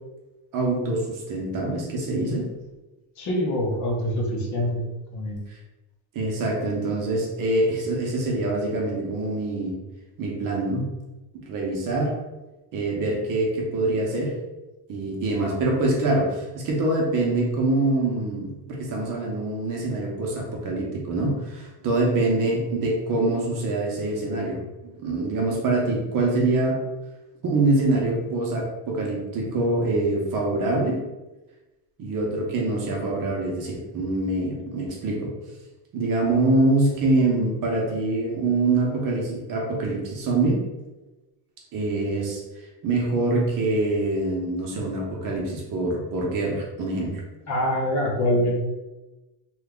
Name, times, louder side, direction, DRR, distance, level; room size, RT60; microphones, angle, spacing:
voice 1, 0.5-2.5 5.5-5.6 6.1-9.7 10.2-10.9 11.4-12.1 12.7-14.4 14.9-26.8 27.4-31.0 32.0-35.3 35.9-40.6 41.7-42.4 42.8-47.2, right 2 dB, 45° right, -1 dB, 0.8 m, -25 dB
voice 2, 3.2-4.8 5.1-5.4 47.5-48.6, left 1 dB, 40° left, -1 dB, 0.6 m, -24 dB
2.9 x 2.3 x 3.6 m, 1.1 s
cardioid pair, 165°, 44 cm